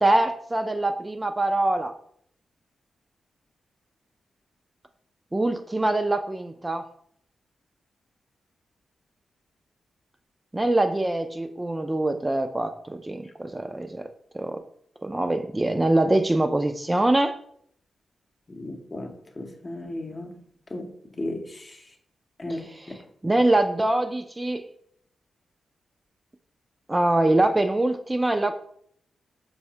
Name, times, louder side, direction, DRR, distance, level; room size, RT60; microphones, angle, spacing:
voice 1, 0.0-1.9 5.3-6.8 10.5-14.1 14.3-14.6 15.0-17.3 22.5-23.0 23.2-24.6 26.9-28.5, right 2 dB, 20° right, 0.3 m, -24 dB
voice 2, 18.5-20.4 20.7-20.9 21.2-21.4 22.4-23.0, left 1 dB, 40° left, 0.6 m, -35 dB
4.6 x 2.1 x 2.8 m
supercardioid pair, 40°, 0 cm